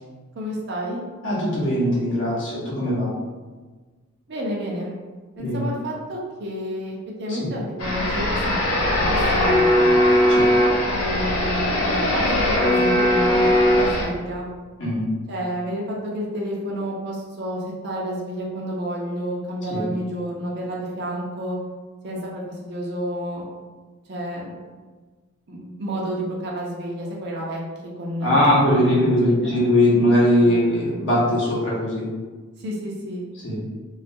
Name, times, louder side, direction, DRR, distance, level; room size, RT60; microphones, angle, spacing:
voice 1, 0.4-1.0 4.3-5.0 5.4-8.7 8.9-10.0 10.8-14.5 15.3-21.6 22.0-23.5 24.1-24.5 25.5-27.6 28.0-29.6 30.4-30.6 32.6-33.3, equal, 50° right, -3 dB, 0.5 m, -30 dB
voice 2, 1.2-3.1 5.4-5.7 7.3-7.5 10.3-10.5 14.8-15.1 19.7-19.8 28.2-32.1 33.4-33.6, left 1 dB, 55° left, -6 dB, 0.8 m, -20 dB
sound 1, 7.8-14.1, left 1 dB, 85° left, 0.5 m, -19 dB
2.3 x 2.3 x 2.6 m, 1.4 s
head